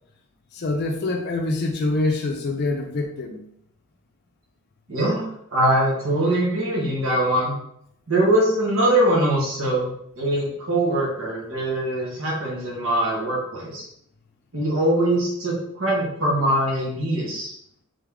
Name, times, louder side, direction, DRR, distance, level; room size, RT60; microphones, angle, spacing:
voice 1, 0.5-3.4, left 2 dB, 50° left, 2 dB, 0.5 m, -25 dB
voice 2, 4.9-5.2 5.5-7.5 8.1-13.8 14.5-17.5, right 1 dB, 65° right, -5 dB, 1.4 m, -22 dB
3.7 x 3.6 x 3.6 m, 0.72 s
head